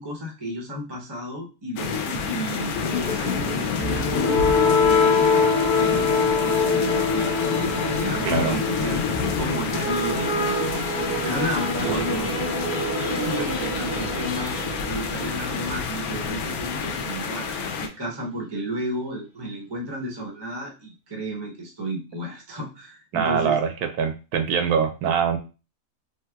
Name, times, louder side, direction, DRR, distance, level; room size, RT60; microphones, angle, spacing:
voice 1, 0.0-5.3 5.7-9.0 9.4-10.8 11.2-12.5 13.2-14.6 14.8-23.5, right 1 dB, 25° right, 0 dB, 0.5 m, -33 dB
sound 1, 1.8-17.9, left 5 dB, 75° left, 1.0 m, -29 dB
sound 2, 3.2-17.1, right 4 dB, 65° right, 0.8 m, -35 dB
sound 3, 3.8-15.7, left 5 dB, 40° left, 0.7 m, -25 dB
voice 2, 8.2-8.5 11.9-12.0 23.1-23.7 24.0-25.4, right 7 dB, 80° right, 6 dB, 1.1 m, -23 dB
3.3 x 2.8 x 2.2 m, 0.31 s
omnidirectional pair, 1.7 m